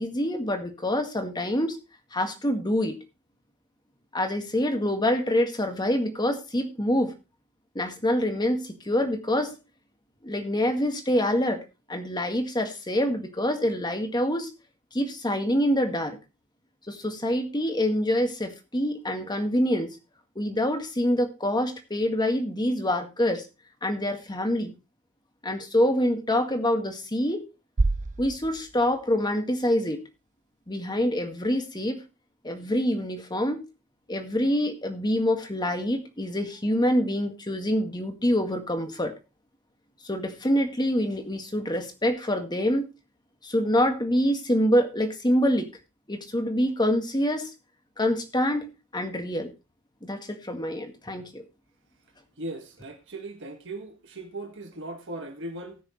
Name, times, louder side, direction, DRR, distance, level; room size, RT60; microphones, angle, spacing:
voice 1, 0.0-1.8 2.1-3.0 4.1-7.1 7.8-9.6 10.2-11.6 11.9-14.5 14.9-16.2 16.9-19.9 20.4-23.5 23.8-24.7 25.4-27.4 28.2-30.0 30.7-32.0 32.4-33.6 34.1-39.1 40.0-42.9 43.4-45.7 46.1-47.5 48.0-49.5 50.0-51.4, equal, 20° left, 1.9 m, -26 dB
sound 1, 27.8-29.9, right 3 dB, 35° right, 0.5 m, -29 dB
voice 2, 52.4-55.8, right 2 dB, 55° right, 1.9 m, -38 dB
19.0 x 6.4 x 3.2 m
head